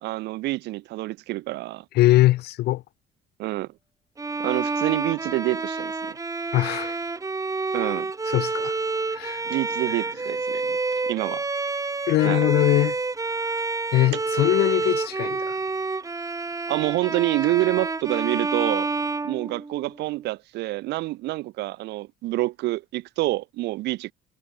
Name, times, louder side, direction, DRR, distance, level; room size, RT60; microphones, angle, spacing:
voice 1, 0.0-1.8 3.4-3.7 4.4-6.2 7.7-8.1 9.4-10.8 11.0-11.4 12.2-12.5 16.7-18.9 19.2-24.1, right 18 dB, 85° right, 2.4 m, -27 dB
voice 2, 1.9-2.8 6.5-7.0 8.3-8.8 9.1-9.4 12.1-13.0 13.9-15.6, left 16 dB, 75° left, 0.8 m, -21 dB
Bowed string instrument, 4.2-20.0, right 3 dB, 20° right, 3.4 m, -28 dB
cardioid pair, 110°, 17 cm